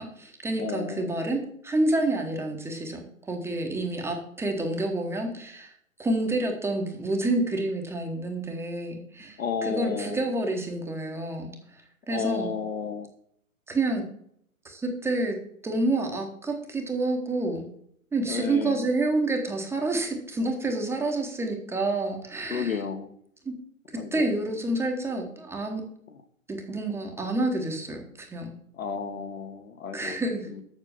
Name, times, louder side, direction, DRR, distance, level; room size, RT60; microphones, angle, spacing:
voice 1, 0.0-5.7 6.0-11.8 12.1-12.5 13.7-14.0 14.6-15.4 15.6-17.7 18.1-22.8 23.4-23.5 24.1-25.8 26.5-28.5 29.9-30.5, right 2 dB, 5° right, 2 dB, 1.0 m, -28 dB
voice 2, 0.6-1.1 9.4-10.2 12.1-13.1 18.3-18.9 22.5-23.1 23.9-24.4 28.8-30.2 30.5-30.6, left 6 dB, 70° left, 7 dB, 1.7 m, -32 dB
7.2 x 6.6 x 6.9 m, 0.68 s
hypercardioid pair, 130°, 42 cm